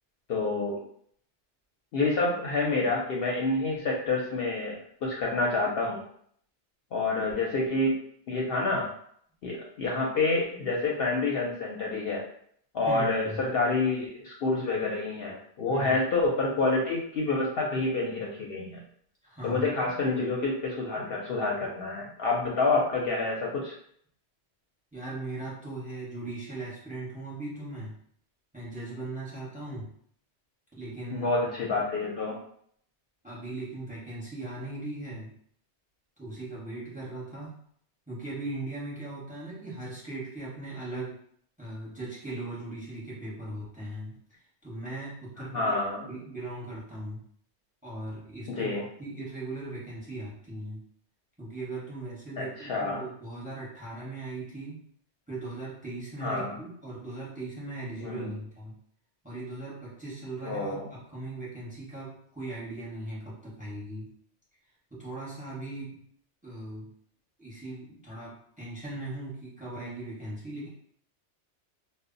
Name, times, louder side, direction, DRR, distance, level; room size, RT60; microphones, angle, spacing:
voice 1, 0.3-0.8 1.9-4.8 5.0-6.0 6.9-8.0 8.3-8.9 9.4-12.2 12.7-18.8 19.4-23.7 31.1-32.4 45.5-46.0 48.5-48.8 52.4-53.0 56.2-56.6 58.0-58.3 60.4-60.8, left 3 dB, 65° left, -3 dB, 0.7 m, -28 dB
voice 2, 12.9-13.4 15.7-16.0 19.2-19.6 24.9-28.0 28.5-29.9 30.8-31.3 33.2-35.3 36.2-37.6 38.1-41.2 41.6-44.2 44.6-45.8 46.0-47.3 47.8-50.8 51.4-54.8 55.3-58.8 59.2-64.1 64.9-66.0 66.4-66.9 67.4-70.7, right 2 dB, 10° right, -6 dB, 0.7 m, -39 dB
2.0 x 2.0 x 3.7 m, 0.64 s
omnidirectional pair, 1.2 m